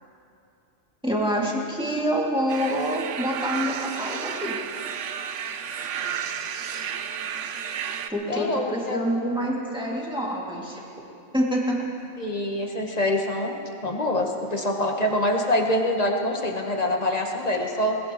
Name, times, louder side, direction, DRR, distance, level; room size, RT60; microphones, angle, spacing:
voice 1, 1.0-4.6 8.1-10.8 11.3-11.8, equal, 5° right, -4 dB, 2.4 m, -26 dB
sound 1, 2.5-8.1, right 8 dB, 75° right, 1.0 m, -32 dB
voice 2, 8.3-9.0 12.2-13.5 13.8-18.0, left 1 dB, 35° left, 1 dB, 1.4 m, -25 dB
21.5 x 20.0 x 3.1 m, 2.7 s
omnidirectional pair, 1.3 m